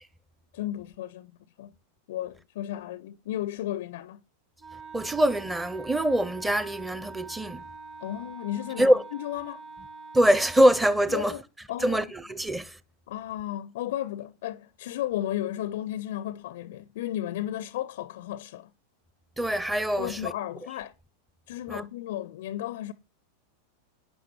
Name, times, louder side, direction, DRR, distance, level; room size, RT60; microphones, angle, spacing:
voice 1, 0.5-1.3 1.6-1.7 2.1-4.2 8.0-8.9 9.2-9.6 11.1-11.4 11.7-12.0 13.1-18.7 20.0-20.9 21.5-22.9, left 13 dB, 55° left, 0.4 m, -34 dB
Wind instrument woodwind instrument, 4.6-11.0, right 3 dB, 25° right, 1.5 m, -45 dB
voice 2, 4.9-7.6 8.8-9.0 10.1-11.4 11.8-12.8 19.4-20.3 21.7-21.8, equal, 5° right, 0.7 m, -24 dB
11.5 x 9.7 x 3.1 m
figure-of-eight pair, 90°, 0 cm